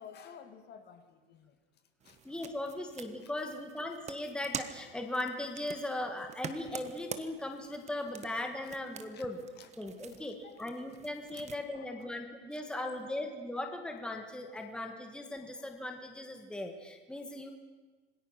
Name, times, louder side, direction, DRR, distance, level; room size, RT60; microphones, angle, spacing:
voice 1, 0.0-1.6 2.0-2.2 3.2-3.3 9.1-9.3 9.6-9.7 10.4-10.7 11.3-11.4 11.7-12.1 12.5-13.2 14.5-14.6 15.6-15.7, left 7 dB, 35° left, 8 dB, 2.0 m, -53 dB
sound 1, 2.0-11.6, right 7 dB, 20° right, 1.3 m, -47 dB
voice 2, 2.3-9.4 9.8-17.5, left 1 dB, 5° left, 4 dB, 1.7 m, -38 dB
26.5 x 19.5 x 6.0 m, 1.3 s
supercardioid pair, 140°, 30 cm